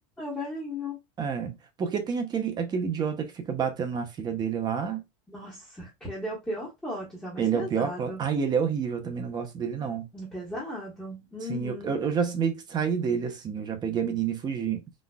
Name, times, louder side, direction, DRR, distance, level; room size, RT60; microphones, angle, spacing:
voice 1, 0.2-1.0 5.3-8.2 10.1-12.0, left 1 dB, 5° left, 1.3 m, -36 dB
voice 2, 1.2-5.0 7.4-10.1 11.5-14.8, right 7 dB, 25° right, 0.7 m, -29 dB
4.0 x 2.4 x 2.3 m
supercardioid pair, 145°, 16 cm